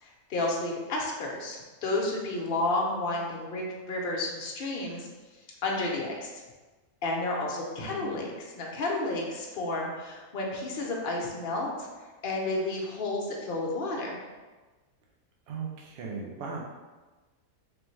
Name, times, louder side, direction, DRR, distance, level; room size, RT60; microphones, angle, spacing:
voice 1, 0.0-5.1 5.6-6.3 7.0-11.9 12.2-14.2, left 2 dB, 55° left, -1 dB, 0.6 m, -31 dB
voice 2, 7.8-8.2 15.5-16.6, right 5 dB, 60° right, -1 dB, 0.7 m, -37 dB
3.4 x 3.2 x 3.1 m, 1.3 s
omnidirectional pair, 1.7 m